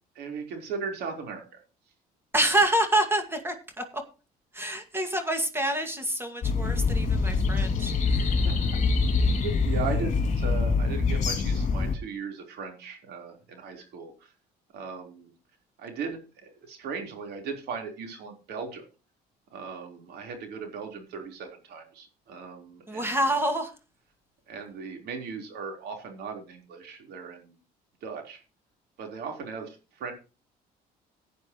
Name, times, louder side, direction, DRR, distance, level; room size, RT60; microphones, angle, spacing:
voice 1, 0.2-1.6 8.4-8.5 9.2-14.3 14.7-15.3 15.8-18.8 19.5-23.5 24.5-27.6 28.0-28.4 29.0-30.1, right 5 dB, 75° right, 4 dB, 4.0 m, -38 dB
voice 2, 2.3-3.8 4.5-8.3 22.9-23.7, right 1 dB, 15° right, 5 dB, 2.2 m, -27 dB
sound 1, 6.4-11.9, left 4 dB, 45° left, 2.6 m, -25 dB
16.5 x 9.4 x 3.1 m, 0.33 s
cardioid pair, 110°, 17 cm